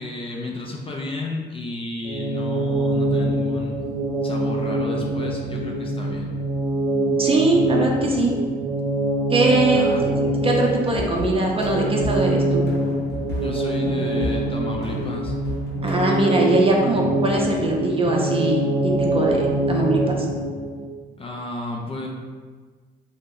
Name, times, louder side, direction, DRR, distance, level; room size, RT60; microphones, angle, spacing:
voice 1, 0.0-3.8 4.2-6.3 9.6-10.1 13.4-15.3 21.2-22.1, left 2 dB, 30° left, 0 dB, 0.4 m, -32 dB
sound 1, 2.0-20.8, right 1 dB, 75° right, 0.7 m, -24 dB
voice 2, 7.2-8.3 9.3-9.9 10.4-12.6 15.8-20.1, right 2 dB, 30° right, -1 dB, 0.6 m, -21 dB
sound 2, 10.9-16.2, right 1 dB, 55° left, 0.9 m, -33 dB
2.8 x 2.1 x 3.6 m, 1.5 s
cardioid pair, 90°, 20 cm